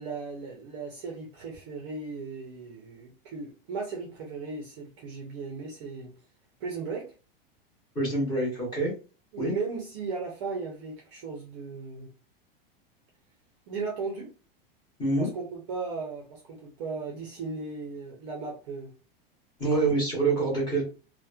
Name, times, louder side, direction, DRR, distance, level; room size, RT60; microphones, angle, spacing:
voice 1, 0.0-6.1 6.6-7.1 9.3-12.1 13.7-14.3 15.1-18.9 19.7-20.0, right 4 dB, 30° right, -1 dB, 0.4 m, -36 dB
voice 2, 7.9-8.9 9.4-9.5 15.0-15.3 19.6-20.8, right 3 dB, 15° left, -3 dB, 0.8 m, -26 dB
2.9 x 2.0 x 2.2 m, 0.35 s
supercardioid pair, 175°, 30 cm